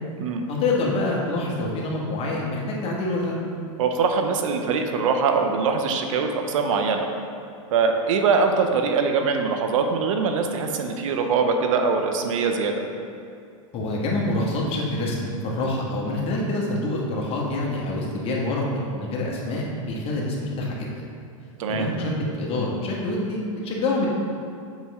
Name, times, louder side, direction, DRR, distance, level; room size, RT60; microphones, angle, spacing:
voice 1, 0.5-3.4 13.7-20.9 21.7-24.1, left 2 dB, 35° left, -3 dB, 1.5 m, -26 dB
voice 2, 3.8-7.1 7.7-12.8 21.6-21.9, right 5 dB, 75° right, 5 dB, 0.7 m, -22 dB
7.4 x 5.4 x 3.6 m, 2.4 s
supercardioid pair, 125°, 17 cm